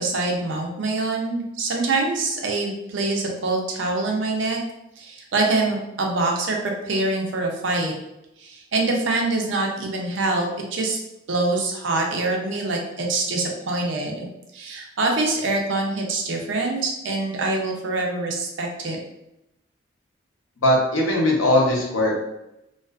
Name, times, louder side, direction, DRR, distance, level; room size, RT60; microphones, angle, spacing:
voice 1, 0.0-4.6 5.0-7.9 8.4-11.0 11.3-14.2 14.5-19.0, right 2 dB, 70° right, 1 dB, 0.5 m, -25 dB
voice 2, 20.6-22.2, left 1 dB, 90° left, -2 dB, 0.8 m, -19 dB
2.4 x 2.4 x 2.3 m, 0.88 s
head